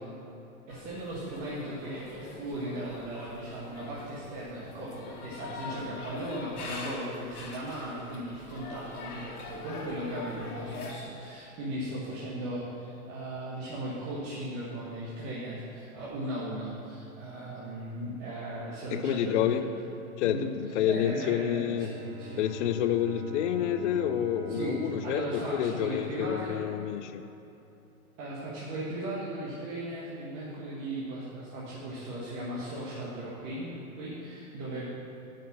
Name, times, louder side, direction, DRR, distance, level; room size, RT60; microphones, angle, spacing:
sound 1, 0.7-11.0, left 3 dB, 85° left, 1.6 m, -43 dB
voice 1, 0.7-19.7 20.2-20.5 20.8-22.4 24.5-26.6 28.2-34.8, right 1 dB, 35° right, -8 dB, 1.6 m, -37 dB
voice 2, 18.9-19.7 20.2-21.9 22.4-25.2 25.5-27.2, left 10 dB, 55° left, 10 dB, 0.5 m, -28 dB
Bowed string instrument, 21.6-26.4, right 5 dB, 20° right, 0.4 m, -45 dB
7.7 x 5.8 x 6.1 m, 2.9 s
hypercardioid pair, 130°, 43 cm